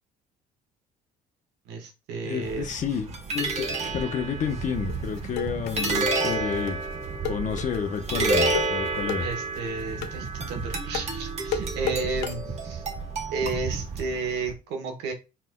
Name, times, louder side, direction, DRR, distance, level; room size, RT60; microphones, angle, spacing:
voice 1, 1.6-2.7 9.2-12.8 13.3-15.1, right 4 dB, 85° right, 1.3 m, -32 dB
voice 2, 2.2-3.1 3.3-6.8 7.3-9.3, left 7 dB, 50° left, 0.9 m, -30 dB
sound 1, 2.4-14.5, right 3 dB, 40° right, 1.2 m, -30 dB
sound 2, 4.9-12.3, left 6 dB, 90° left, 0.6 m, -33 dB
4.3 x 4.3 x 2.3 m
cardioid pair, 110°, 17 cm